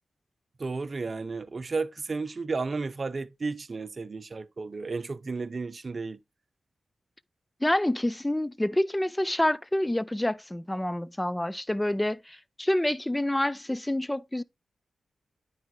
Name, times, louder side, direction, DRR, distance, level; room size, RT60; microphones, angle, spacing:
voice 1, 0.6-6.2, right 4 dB, 50° right, 0.5 m, -33 dB
voice 2, 7.6-14.4, left 1 dB, 15° left, 0.4 m, -27 dB
9.3 x 4.8 x 3.0 m
cardioid pair, 45°, 0 cm